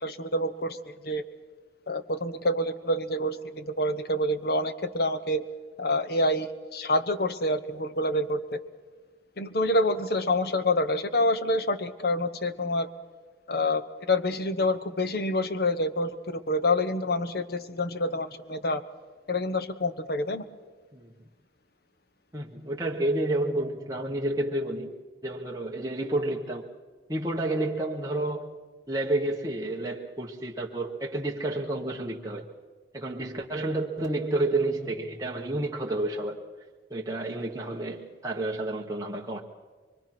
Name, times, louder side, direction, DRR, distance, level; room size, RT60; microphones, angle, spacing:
voice 1, 0.0-1.2 1.9-5.4 5.8-8.6 9.4-12.9 13.5-18.8 19.3-20.5, left 1 dB, 55° left, 1.1 m, -27 dB
voice 2, 22.3-24.9 25.2-26.7 27.1-28.5 28.9-32.5 32.9-36.4 36.9-39.4, right 2 dB, 20° right, 1.3 m, -30 dB
24.0 x 23.5 x 6.1 m
head